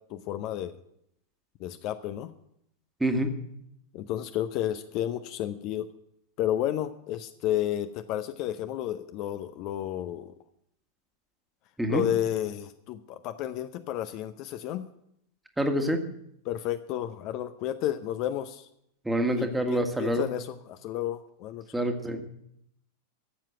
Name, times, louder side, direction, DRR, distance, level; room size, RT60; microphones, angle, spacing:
voice 1, 0.1-0.8 1.6-2.3 3.9-5.9 6.4-10.3 11.9-14.9 16.4-18.7 19.3-21.8, left 12 dB, 40° left, 10 dB, 0.7 m, -32 dB
voice 2, 3.0-3.3 11.8-12.0 15.6-16.0 19.0-20.4 21.7-22.3, right 1 dB, 5° right, 6 dB, 1.6 m, -27 dB
14.0 x 7.5 x 7.9 m, 0.75 s
figure-of-eight pair, 90°, 0 cm